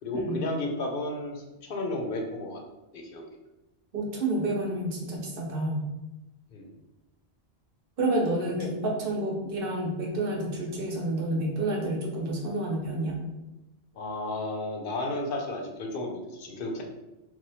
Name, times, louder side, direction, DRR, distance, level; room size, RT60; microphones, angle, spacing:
voice 1, 0.0-2.6 2.9-3.2 6.5-6.7 8.6-8.7 13.9-16.8, left 2 dB, 65° left, 2 dB, 0.7 m, -33 dB
voice 2, 3.9-5.9 8.0-13.2, right 1 dB, 60° right, -1 dB, 0.9 m, -29 dB
2.8 x 2.2 x 4.0 m, 0.98 s
omnidirectional pair, 1.1 m